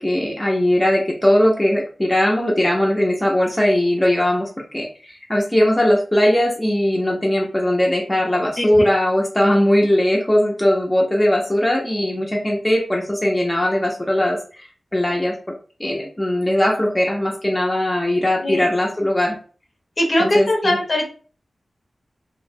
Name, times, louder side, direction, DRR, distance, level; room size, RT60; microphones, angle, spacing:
voice 1, 0.0-15.3 15.8-19.4 20.2-20.8, left 1 dB, 15° left, -2 dB, 0.5 m, -19 dB
voice 2, 20.0-21.1, left 1 dB, 50° left, 0 dB, 0.8 m, -20 dB
2.6 x 2.0 x 2.6 m, 0.40 s
wide cardioid pair, 85°, 0 cm